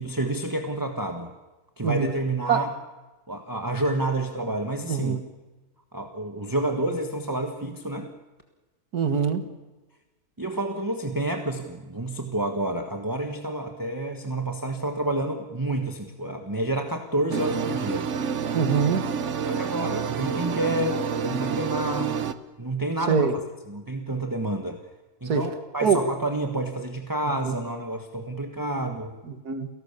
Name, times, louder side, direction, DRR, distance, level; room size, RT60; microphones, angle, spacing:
voice 1, 0.0-1.3 1.8-2.7 3.3-5.2 5.9-8.1 10.4-18.1 19.4-22.2 22.6-23.4 23.7-24.8 25.2-29.2, right 1 dB, 15° right, 4 dB, 1.4 m, -29 dB
voice 2, 4.9-5.2 8.9-9.4 18.5-19.0 23.1-23.3 25.3-25.4 25.8-26.0 27.4-27.5 29.3-29.7, right 7 dB, 85° right, 9 dB, 2.3 m, -23 dB
sound 1, 17.3-22.3, right 6 dB, 55° right, 1.2 m, -28 dB
29.0 x 18.0 x 6.9 m, 1.2 s
omnidirectional pair, 1.6 m